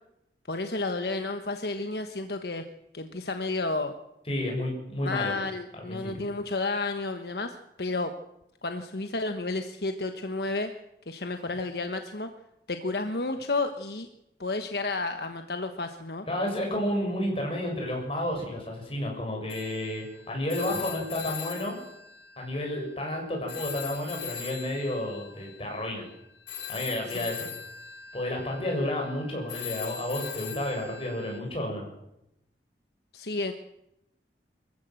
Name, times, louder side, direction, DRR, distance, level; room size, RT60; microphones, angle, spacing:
voice 1, 0.5-2.6 2.9-3.9 5.0-8.1 8.6-10.7 11.1-12.3 12.7-14.1 14.4-16.3 27.1-27.5 33.1-33.5, left 3 dB, 65° left, 7 dB, 1.3 m, -31 dB
voice 2, 4.3-5.3 5.9-6.2 16.3-21.8 22.4-26.1 26.7-27.5 28.1-31.9, left 1 dB, 30° left, 0 dB, 7.1 m, -31 dB
Telephone, 19.5-23.1 23.5-31.4, left 8 dB, 80° left, 2.5 m, -41 dB
24.0 x 15.0 x 7.8 m, 0.85 s
head